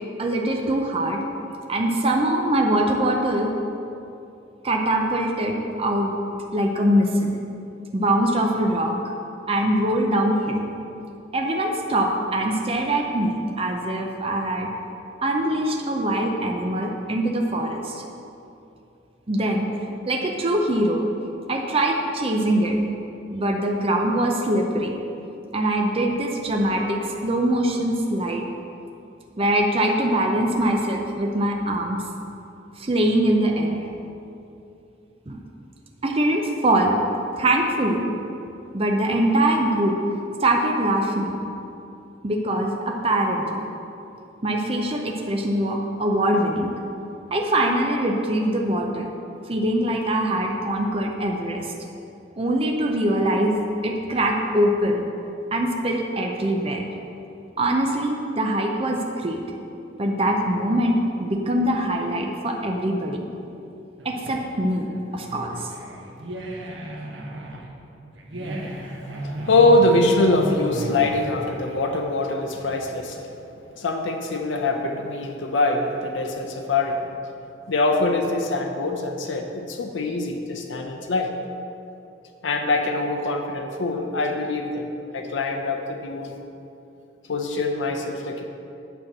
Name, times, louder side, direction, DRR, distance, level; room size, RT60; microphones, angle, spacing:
voice 1, 0.2-1.2 1.7-3.5 4.6-6.2 6.5-7.3 7.9-8.9 9.5-10.6 11.3-14.7 15.2-18.0 19.3-19.7 20.1-21.0 21.5-22.8 23.3-24.9 25.5-28.4 29.4-32.0 32.8-33.9 35.3-35.4 36.0-37.0 37.4-38.1 38.7-40.0 40.4-41.3 42.2-43.7 44.4-46.8 47.3-49.1 49.5-51.7 52.4-55.0 55.5-56.8 57.6-59.4 60.0-63.2 64.0-65.7, right 1 dB, 30° right, 1 dB, 0.6 m, -23 dB
sound 1, 64.0-73.0, right 1 dB, 75° right, 1.1 m, -35 dB
voice 2, 69.2-73.3 73.7-77.0 77.7-81.3 82.4-86.4 87.3-88.5, left 2 dB, 80° left, 3 dB, 0.7 m, -23 dB
9.0 x 4.5 x 7.2 m, 2.8 s
head